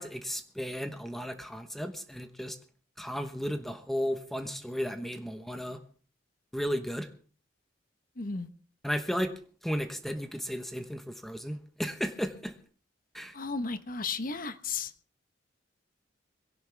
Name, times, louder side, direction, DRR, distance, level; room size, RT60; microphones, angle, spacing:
voice 1, 0.0-2.6 3.0-5.8 6.5-7.1 8.8-9.3 9.6-12.5 13.1-13.3, equal, ahead, 7 dB, 1.1 m, -34 dB
voice 2, 8.2-8.5 13.3-14.9, left 4 dB, 50° left, 11 dB, 1.1 m, -34 dB
21.5 x 17.0 x 3.5 m, 0.42 s
head